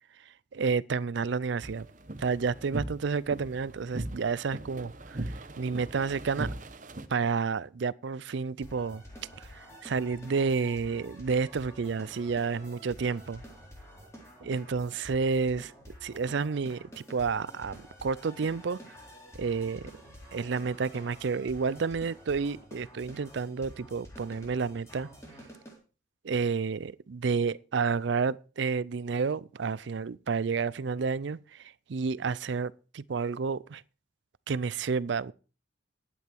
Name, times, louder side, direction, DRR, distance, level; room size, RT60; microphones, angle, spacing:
voice 1, 0.5-1.9 2.2-5.2 5.6-6.5 7.1-9.0 9.4-13.4 14.4-15.7 16.0-18.8 19.4-19.9 20.3-25.1 26.2-31.4 31.9-33.8 34.5-35.3, right 5 dB, 65° right, 0.4 m, -30 dB
sound 1, 1.6-7.1, right 2 dB, 40° right, 0.9 m, -39 dB
sound 2, 8.6-25.8, equal, 15° left, 3.8 m, -49 dB
11.5 x 8.8 x 4.5 m
head